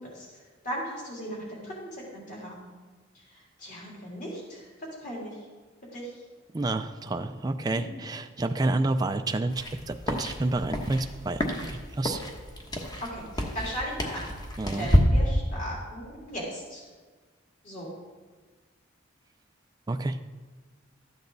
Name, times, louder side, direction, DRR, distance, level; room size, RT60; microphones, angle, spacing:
voice 1, 0.0-2.7 3.1-4.7 5.0-5.4 5.9-6.2 13.1-14.3 14.6-16.8 17.6-17.9, equal, 40° left, -4 dB, 3.5 m, -38 dB
voice 2, 6.5-12.2 14.6-14.9 19.9-20.2, right 2 dB, 20° right, 7 dB, 0.4 m, -29 dB
sound 1, 9.5-15.0, equal, 20° left, 1.1 m, -29 dB
13.0 x 8.7 x 4.0 m, 1.4 s
head